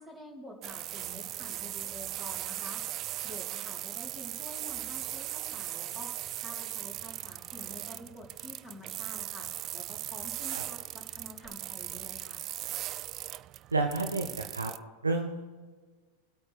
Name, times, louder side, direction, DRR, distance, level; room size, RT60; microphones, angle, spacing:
voice 1, 0.0-2.8 3.2-9.5 9.7-12.4, equal, 5° right, -2 dB, 3.4 m, -48 dB
sound 1, 0.6-14.8, right 14 dB, 35° right, 0.3 m, -38 dB
voice 2, 13.7-14.7 15.0-15.4, right 3 dB, 80° right, 4 dB, 1.0 m, -30 dB
21.5 x 8.6 x 3.3 m, 1.4 s
figure-of-eight pair, 90°, 0 cm